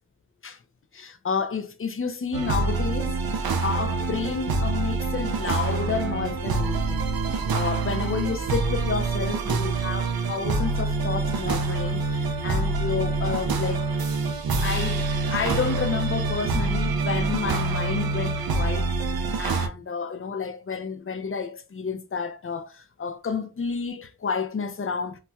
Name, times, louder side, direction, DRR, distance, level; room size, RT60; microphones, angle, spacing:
voice 1, 0.9-3.2 3.6-7.0 7.5-13.9 14.6-18.9 19.4-25.2, left 5 dB, 35° left, 0.5 m, -30 dB
sound 1, 2.3-19.7, right 3 dB, 70° right, 0.5 m, -26 dB
4.1 x 2.2 x 2.3 m
wide cardioid pair, 115°, 37 cm